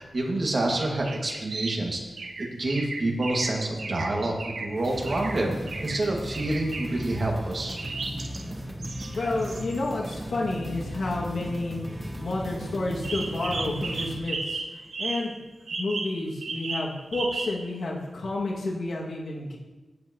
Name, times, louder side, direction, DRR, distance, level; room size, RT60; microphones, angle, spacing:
voice 1, 0.0-2.0 2.4-5.5 5.8-7.8, right 2 dB, 50° right, 0 dB, 1.8 m, -27 dB
sound 1, 0.8-1.9 2.2-4.7 5.1-5.4 5.7-6.0 6.3-6.9 7.8-8.4 8.8-10.2 13.0-15.4 15.7-17.7, right 3 dB, 75° right, 1.1 m, -35 dB
sound 2, 4.7-14.2, equal, 15° right, 1.6 m, -36 dB
voice 2, 9.1-11.8 12.2-15.4 15.7-19.6, left 2 dB, 80° left, -3 dB, 1.9 m, -30 dB
15.0 x 7.5 x 2.9 m, 1.2 s
wide cardioid pair, 125°, 0 cm